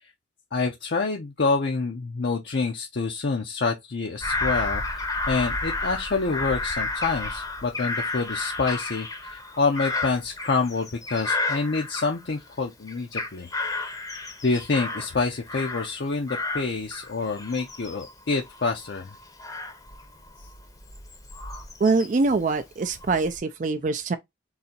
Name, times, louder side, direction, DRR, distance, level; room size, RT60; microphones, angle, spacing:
voice 1, 0.5-13.5 14.4-19.1, left 4 dB, 55° left, 0.6 m, -27 dB
Bird vocalization bird call bird song / Crow, 4.2-12.5 12.9-16.0 16.3-22.3 22.8-23.4, left 3 dB, 20° left, 0.7 m, -32 dB
voice 2, 21.8-24.2, right 3 dB, 40° right, 0.4 m, -24 dB
3.9 x 2.7 x 4.2 m
head